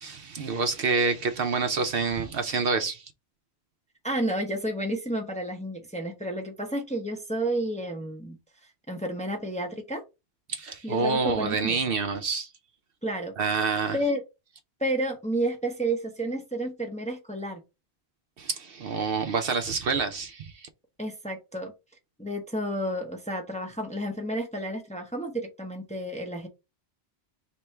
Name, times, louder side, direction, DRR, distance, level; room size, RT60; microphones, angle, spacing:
voice 1, 0.0-3.1 10.5-12.5 13.4-14.0 18.4-20.7, right 4 dB, 65° right, 0.7 m, -27 dB
voice 2, 4.0-8.4 8.9-10.0 10.8-11.8 13.0-13.3 13.9-14.2 14.8-17.6 21.0-21.7 22.2-26.5, right 1 dB, 5° left, 0.7 m, -31 dB
3.3 x 3.0 x 4.3 m
omnidirectional pair, 1.1 m